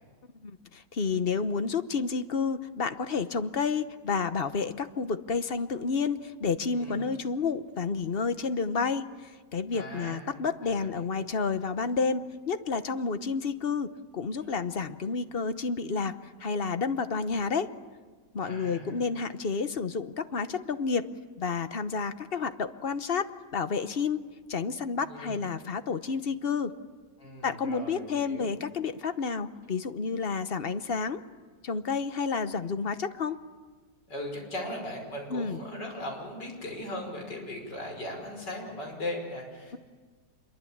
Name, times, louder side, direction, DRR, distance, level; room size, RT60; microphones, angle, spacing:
voice 1, 0.4-16.1 16.4-17.7 18.3-21.1 21.4-24.2 24.5-26.7 27.4-31.2 31.6-33.4 35.3-35.6, left 5 dB, 40° left, 11 dB, 0.9 m, -30 dB
voice 2, 6.7-7.0 9.7-10.2 10.6-11.1 18.4-19.0 25.0-25.4 27.2-28.5 34.1-39.8, left 1 dB, 70° left, 2 dB, 6.1 m, -38 dB
26.5 x 23.0 x 8.7 m, 1.4 s
omnidirectional pair, 1.9 m